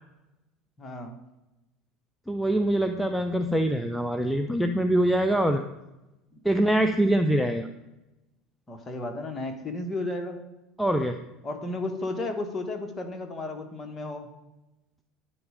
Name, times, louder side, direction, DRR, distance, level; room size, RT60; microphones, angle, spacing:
voice 1, 0.8-1.2 6.3-6.4 8.7-10.4 11.4-14.3, left 2 dB, 25° left, 5 dB, 1.2 m, -33 dB
voice 2, 2.3-5.6 6.4-7.7 10.8-11.2, right 1 dB, ahead, 6 dB, 0.4 m, -24 dB
9.8 x 4.1 x 4.9 m, 0.99 s
supercardioid pair, 105°, 0 cm